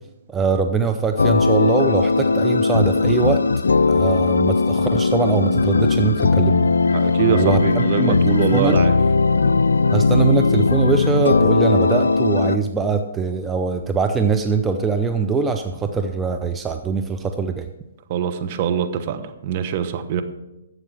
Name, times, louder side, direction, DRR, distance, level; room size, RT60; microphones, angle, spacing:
voice 1, 0.3-3.4 3.9-6.7 7.3-8.1 8.5-8.8 9.9-17.7, right 5 dB, 15° right, 6 dB, 0.6 m, -22 dB
sound 1, 1.2-12.6, left 4 dB, 80° left, 0.4 m, -18 dB
voice 2, 6.9-8.9 18.1-20.2, right 8 dB, 45° right, 8 dB, 1.0 m, -23 dB
12.0 x 7.7 x 4.8 m, 0.95 s
hypercardioid pair, 130°, 0 cm